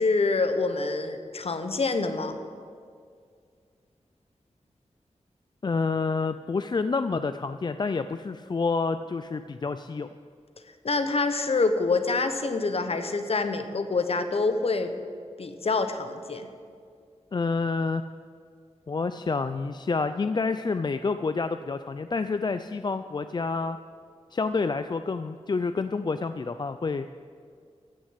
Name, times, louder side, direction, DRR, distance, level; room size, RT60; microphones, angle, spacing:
voice 1, 0.0-2.4 10.8-14.9 15.4-16.5, left 3 dB, 60° left, 8 dB, 1.1 m, -26 dB
voice 2, 5.6-10.1 17.3-18.0 18.9-23.8 24.3-27.1, left 4 dB, 40° left, 10 dB, 0.4 m, -28 dB
15.0 x 6.4 x 8.1 m, 2.1 s
wide cardioid pair, 80°, 12 cm